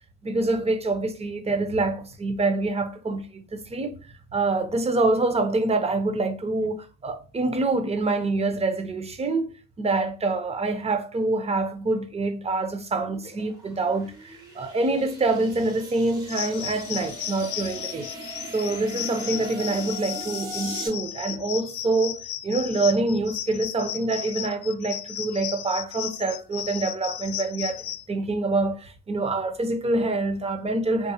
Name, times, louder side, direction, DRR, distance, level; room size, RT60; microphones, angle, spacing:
voice 1, 0.2-4.0 4.3-18.1 18.5-31.1, right 2 dB, 20° right, 0.6 m, -26 dB
sound 1, 12.9-20.9, right 1 dB, 85° right, 1.8 m, -40 dB
sound 2, 16.3-28.0, left 12 dB, 75° left, 0.4 m, -35 dB
3.7 x 2.6 x 2.8 m
cardioid pair, 90°, 30 cm